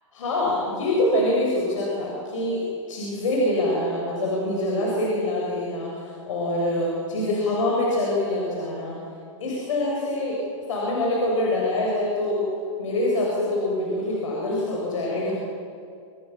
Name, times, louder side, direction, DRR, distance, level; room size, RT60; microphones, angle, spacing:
voice 1, 0.1-2.6 2.9-9.0 9.4-10.4 10.7-12.4 12.8-15.3, left 1 dB, 80° left, -3 dB, 7.3 m, -25 dB
26.5 x 17.5 x 7.3 m, 2.4 s
hypercardioid pair, 140°, 16 cm